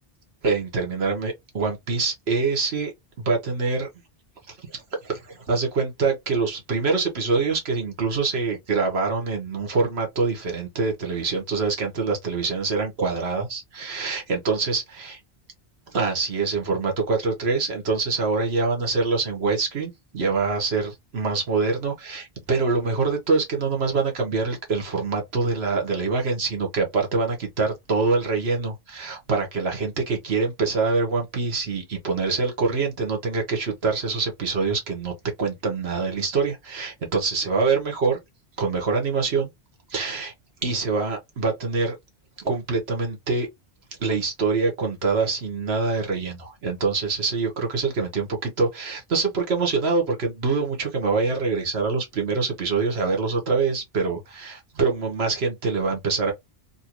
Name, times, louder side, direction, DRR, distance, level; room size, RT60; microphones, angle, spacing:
voice 1, 0.4-2.9 3.2-3.9 4.5-15.2 15.9-38.2 38.6-39.5 39.9-40.3 40.6-41.9 42.4-43.5 44.0-56.3, right 4 dB, 85° right, 1.5 m, -25 dB
3.0 x 2.7 x 2.9 m
omnidirectional pair, 1.0 m